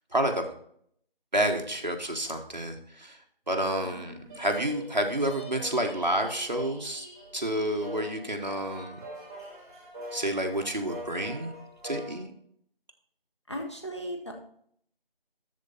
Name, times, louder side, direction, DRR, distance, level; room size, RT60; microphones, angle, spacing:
voice 1, 0.1-0.4 1.3-3.2 3.5-7.1 7.3-9.0 10.1-11.5 11.8-12.3, right 1 dB, 50° right, 3 dB, 1.4 m, -29 dB
sound 1, 3.8-12.2, equal, 15° right, 2.8 m, -44 dB
voice 2, 13.5-14.3, equal, 30° left, 2 dB, 1.1 m, -36 dB
13.0 x 4.4 x 4.1 m, 0.64 s
figure-of-eight pair, 180°, 29 cm